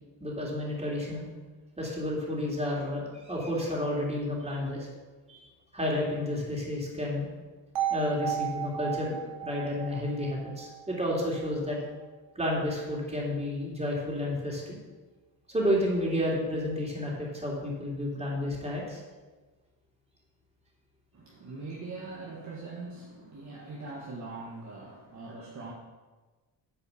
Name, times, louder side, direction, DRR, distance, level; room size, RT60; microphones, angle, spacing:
voice 1, 0.2-1.2 1.8-4.9 5.3-7.3 7.9-11.8 12.3-14.8 15.5-19.0, left 1 dB, 15° right, -3 dB, 3.3 m, -31 dB
sound 1, 7.8-11.7, right 10 dB, 85° right, 1.6 m, -35 dB
voice 2, 21.1-25.7, right 3 dB, 40° right, -3 dB, 1.6 m, -42 dB
9.1 x 4.7 x 7.0 m, 1.3 s
cardioid pair, 90°, 44 cm